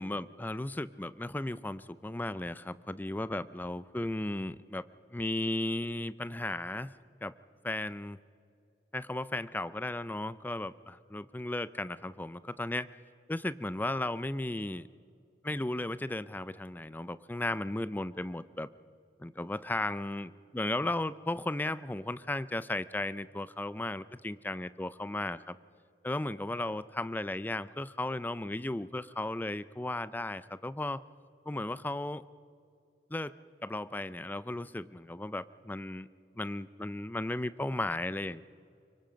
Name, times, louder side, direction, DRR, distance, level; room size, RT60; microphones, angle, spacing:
voice 1, 0.0-4.8 5.1-6.9 7.2-7.3 7.6-8.2 8.9-12.9 13.3-14.9 15.4-18.7 19.2-25.6 26.0-31.0 31.5-32.2 33.1-33.3 33.6-36.1 36.4-38.4, left 1 dB, 10° left, 16 dB, 0.4 m, -35 dB
25.0 x 23.0 x 5.1 m, 2.5 s
head